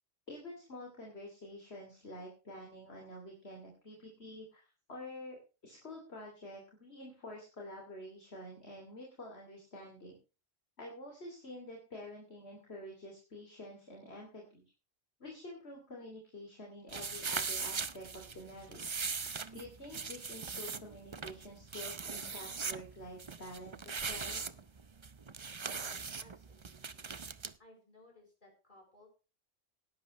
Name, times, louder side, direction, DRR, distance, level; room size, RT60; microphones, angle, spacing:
voice 1, 0.3-5.4 5.6-10.1 10.8-14.6 15.2-19.0 19.5-24.4, left 1 dB, 55° left, 0 dB, 3.3 m, -48 dB
sound 1, 16.9-27.5, right 5 dB, 30° right, 0.6 m, -40 dB
voice 2, 25.7-27.1 27.6-29.1, left 1 dB, 40° left, 0 dB, 6.8 m, -61 dB
19.0 x 11.5 x 3.2 m, 0.34 s
omnidirectional pair, 1.3 m